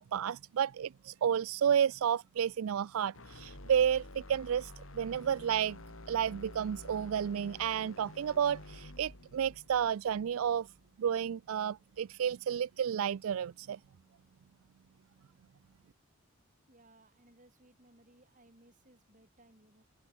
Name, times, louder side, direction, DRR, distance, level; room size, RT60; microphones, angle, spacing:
voice 1, 0.0-5.8 6.1-10.7 11.0-13.8, right 8 dB, 75° right, 0.4 m, -31 dB
sound 1, 3.1-11.3, left 1 dB, 70° left, 3.7 m, -50 dB
voice 2, 16.7-19.8, right 1 dB, 35° right, 5.0 m, -63 dB
head